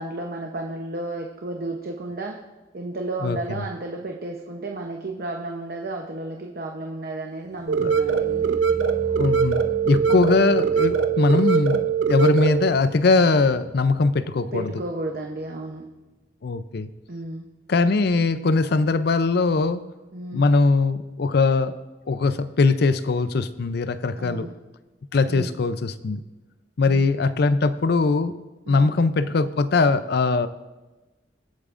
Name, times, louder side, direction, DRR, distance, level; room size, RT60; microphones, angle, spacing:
voice 1, 0.0-2.4 2.7-8.8 10.1-10.3 14.5-15.8 17.1-17.5 20.1-20.5 24.2-24.5 25.3-25.6 26.8-27.1 28.7-29.0, right 2 dB, 55° right, 1 dB, 0.8 m, -33 dB
voice 2, 3.2-3.6 7.8-7.9 9.1-14.7 16.4-16.9 17.7-19.8 20.3-21.7 22.1-24.5 25.1-26.2 26.8-28.4 28.7-30.5, left 3 dB, 60° left, 13 dB, 0.5 m, -21 dB
sound 1, 7.5-14.6 14.8-15.3 15.6-15.7, right 2 dB, 40° right, 1.7 m, -40 dB
sound 2, 7.7-12.7, right 6 dB, 85° right, 0.7 m, -22 dB
24.5 x 8.4 x 2.5 m, 1.2 s
head